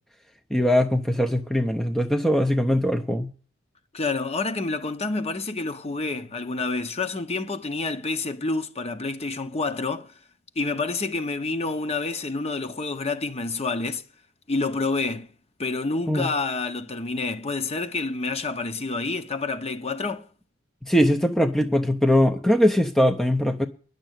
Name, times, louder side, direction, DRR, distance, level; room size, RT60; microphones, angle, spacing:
voice 1, 0.5-3.3 16.1-16.3 20.8-23.7, equal, ahead, 0.6 m, -21 dB
voice 2, 3.9-10.1 10.6-14.0 14.5-15.3 15.6-20.3, left 3 dB, 30° left, 0.9 m, -28 dB
10.5 x 6.7 x 9.0 m
head